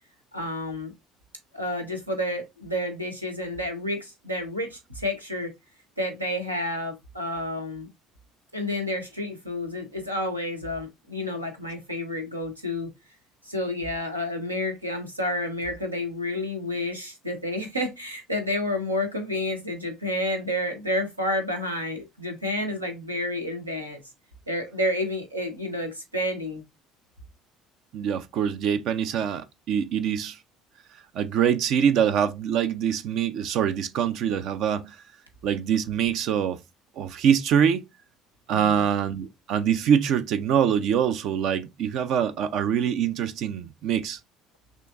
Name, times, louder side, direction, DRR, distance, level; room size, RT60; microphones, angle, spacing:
voice 1, 0.3-0.9 1.5-5.5 6.0-7.9 8.5-12.9 13.4-24.0 24.5-26.6 38.5-38.8, left 1 dB, 90° right, 0.8 m, -30 dB
voice 2, 27.9-30.4 31.1-35.0 35.4-36.6 37.0-37.8 38.5-44.2, right 8 dB, 55° right, 0.4 m, -24 dB
6.3 x 2.5 x 2.4 m
figure-of-eight pair, 60°, 0 cm